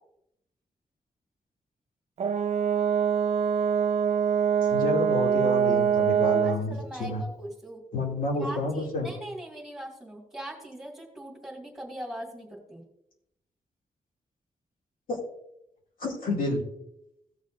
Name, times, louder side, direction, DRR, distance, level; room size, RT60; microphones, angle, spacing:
Brass instrument, 2.2-6.7, right 7 dB, 50° right, 0.5 m, -24 dB
voice 1, 4.7-7.2 7.9-9.1 15.1-15.2 16.0-16.6, left 2 dB, 80° left, -2 dB, 2.6 m, -29 dB
voice 2, 6.4-7.8 8.4-12.8, right 1 dB, ahead, -1 dB, 2.2 m, -40 dB
16.5 x 7.2 x 2.6 m, 0.79 s
wide cardioid pair, 155°, 14 cm